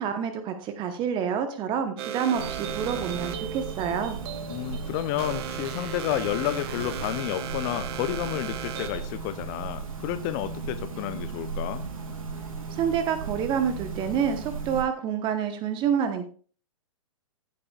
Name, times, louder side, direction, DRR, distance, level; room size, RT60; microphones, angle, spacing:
voice 1, 0.0-4.2 12.7-16.3, right 8 dB, 25° right, 8 dB, 1.0 m, -28 dB
sound 1, 2.0-9.1, right 9 dB, 45° right, 1.3 m, -36 dB
sound 2, 2.3-14.8, right 4 dB, 70° right, 2.8 m, -36 dB
voice 2, 4.5-11.8, left 14 dB, 30° left, 12 dB, 0.6 m, -31 dB
14.5 x 8.6 x 2.4 m, 0.41 s
figure-of-eight pair, 120°, 18 cm